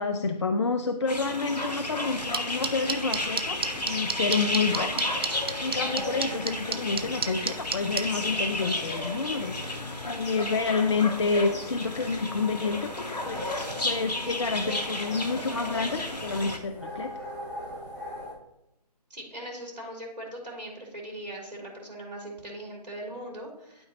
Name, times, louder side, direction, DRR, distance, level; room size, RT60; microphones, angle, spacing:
voice 1, 0.0-5.0 5.6-9.5 10.0-13.5 13.8-17.1, left 4 dB, 45° left, 8 dB, 0.5 m, -29 dB
sound 1, 1.1-16.6, left 2 dB, 80° left, 1.3 m, -33 dB
sound 2, 2.3-8.0, right 6 dB, 35° right, 0.5 m, -28 dB
sound 3, 2.9-18.3, equal, 5° left, 1.6 m, -42 dB
voice 2, 19.1-23.8, right 1 dB, 80° right, -2 dB, 3.0 m, -40 dB
11.0 x 5.0 x 2.9 m, 0.85 s
figure-of-eight pair, 150°, 21 cm